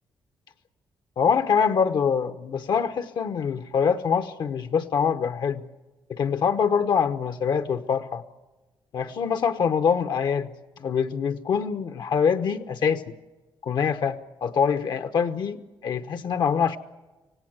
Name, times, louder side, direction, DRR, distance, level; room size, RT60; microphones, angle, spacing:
voice 1, 1.2-5.6 6.1-8.2 8.9-10.5 10.8-13.0 13.6-15.6 15.8-16.8, left 6 dB, 60° left, 9 dB, 1.0 m, -24 dB
26.0 x 18.0 x 8.0 m, 1.1 s
wide cardioid pair, 145°, 9 cm